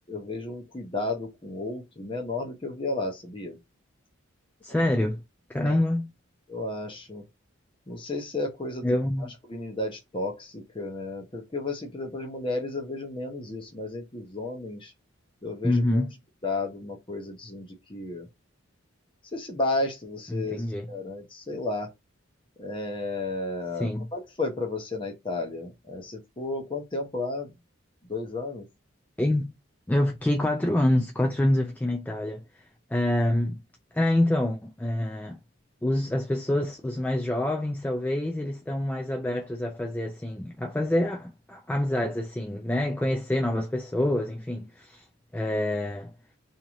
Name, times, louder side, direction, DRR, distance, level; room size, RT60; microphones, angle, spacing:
voice 1, 0.1-3.6 4.8-4.9 5.6-5.8 6.5-7.2 7.9-9.0 9.5-14.9 15.4-16.0 16.4-18.3 19.3-21.9 22.6-27.6 28.1-28.7, left 2 dB, 25° left, 0.9 m, -33 dB
voice 2, 4.6-5.2 5.5-6.1 8.8-9.3 15.6-16.2 20.3-20.9 23.7-24.1 29.2-29.5 29.9-32.6 32.9-33.6 33.9-35.4 35.8-45.0 45.3-46.1, left 1 dB, 10° left, 0.3 m, -26 dB
3.0 x 2.8 x 3.6 m
head